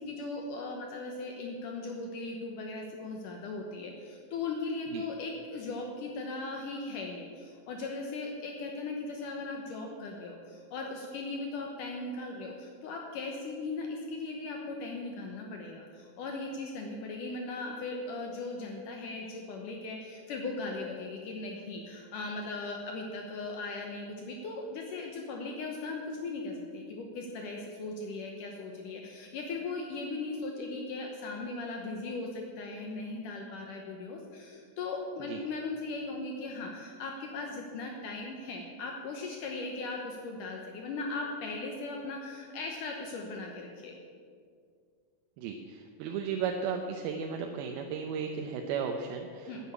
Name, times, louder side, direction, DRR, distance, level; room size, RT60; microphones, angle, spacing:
voice 1, 0.0-44.0 49.5-49.6, left 3 dB, 70° left, 1 dB, 2.4 m, -38 dB
voice 2, 45.4-49.7, right 6 dB, 90° right, 3 dB, 2.7 m, -35 dB
11.0 x 8.8 x 8.4 m, 2.1 s
omnidirectional pair, 4.3 m